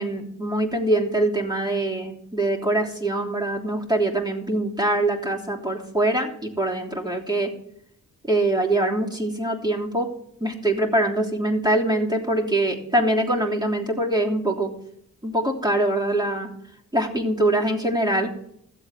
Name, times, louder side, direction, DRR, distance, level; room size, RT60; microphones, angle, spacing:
voice 1, 0.0-7.5 8.3-10.1 10.4-14.7 15.2-16.5 16.9-18.3, right 1 dB, 10° right, -1 dB, 3.2 m, -23 dB
14.5 x 7.8 x 4.4 m, 0.72 s
hypercardioid pair, 40°, 40 cm